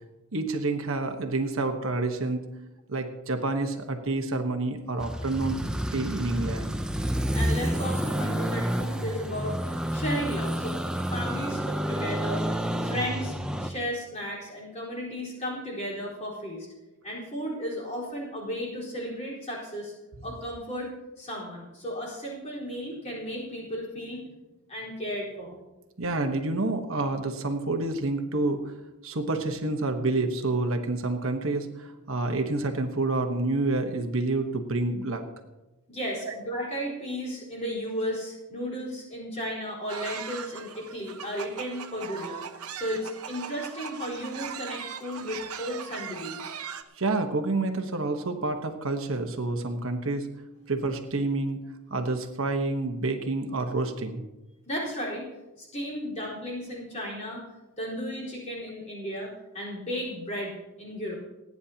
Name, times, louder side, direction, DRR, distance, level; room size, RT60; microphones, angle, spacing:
voice 1, 0.3-2.4 2.9-5.6 5.9-6.8 26.0-28.7 29.0-35.2 36.2-36.3 47.0-50.3 50.7-51.6 51.9-54.2, right 2 dB, 60° right, 5 dB, 1.2 m, -28 dB
sound 1, 5.0-13.7, equal, 5° right, 0.6 m, -29 dB
voice 2, 7.3-10.8 11.1-16.7 17.0-19.9 20.2-24.2 24.7-25.6 35.9-42.4 42.7-46.5 54.6-55.3 55.6-57.4 57.8-61.2, equal, 30° left, -4 dB, 4.3 m, -34 dB
sound 2, 39.9-46.8, right 7 dB, 80° right, 0.9 m, -39 dB
28.5 x 9.6 x 2.9 m, 1.0 s
head